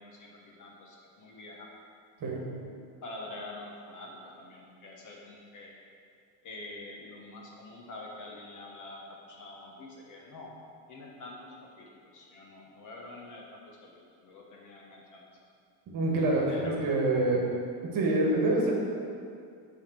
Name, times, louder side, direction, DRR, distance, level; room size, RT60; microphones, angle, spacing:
voice 1, 0.0-1.7 3.0-5.7 6.4-10.5 10.9-13.9 14.2-15.2 16.5-16.9, left 2 dB, 40° left, -1 dB, 1.1 m, -46 dB
voice 2, 15.9-17.4 17.9-18.7, right 2 dB, 45° right, -2 dB, 1.4 m, -26 dB
7.7 x 3.7 x 6.0 m, 2.3 s
cardioid pair, 160°, 46 cm